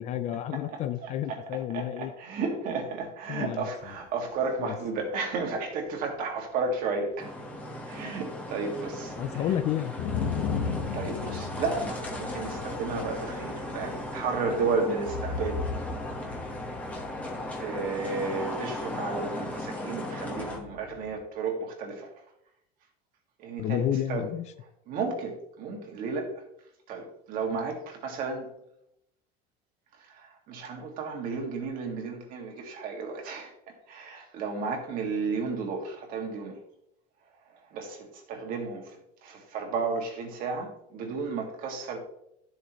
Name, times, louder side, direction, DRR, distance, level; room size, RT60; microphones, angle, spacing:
voice 1, 0.0-2.1 3.3-3.7 4.6-4.8 9.1-10.1 23.6-24.5, left 11 dB, 35° left, 11 dB, 0.4 m, -30 dB
voice 2, 0.5-7.3 7.9-9.4 10.7-15.6 17.6-22.1 23.4-24.3 24.9-26.4 26.9-28.5 30.0-33.5 33.9-36.5 37.7-42.0, right 4 dB, 45° right, 3 dB, 2.1 m, -33 dB
sound 1, 3.8-3.9 8.5-8.6 8.9-21.2, left 5 dB, 55° left, 1.2 m, -37 dB
sound 2, 7.2-20.6, left 1 dB, 5° left, 1.3 m, -37 dB
12.0 x 7.5 x 3.1 m, 0.78 s
cardioid pair, 170°, 20 cm